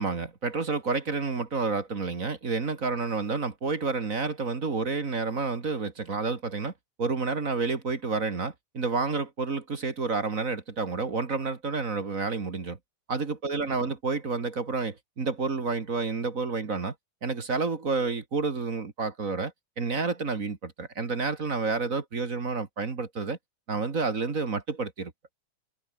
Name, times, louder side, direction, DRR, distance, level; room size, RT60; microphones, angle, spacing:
voice 1, 0.0-6.7 7.0-12.8 13.1-16.9 17.2-23.4 23.7-25.1, right 4 dB, 30° right, 2.2 m, -29 dB
omnidirectional pair, 3.5 m